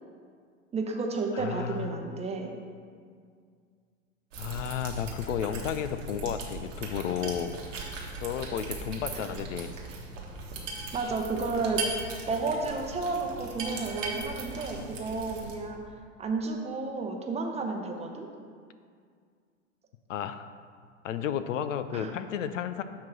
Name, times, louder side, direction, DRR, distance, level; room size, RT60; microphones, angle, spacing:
voice 1, 0.7-2.5 9.1-9.2 10.9-11.8 12.3-15.8 16.2-18.3 21.9-22.1, right 3 dB, 15° right, 2 dB, 0.7 m, -32 dB
voice 2, 1.3-2.0 4.4-7.5 8.2-9.7 20.1-20.5 21.0-22.8, left 9 dB, 80° left, 11 dB, 0.5 m, -32 dB
sound 1, 4.3-15.5, right 3 dB, 80° right, 1.5 m, -38 dB
7.4 x 3.1 x 6.1 m, 2.1 s
hypercardioid pair, 105°, 37 cm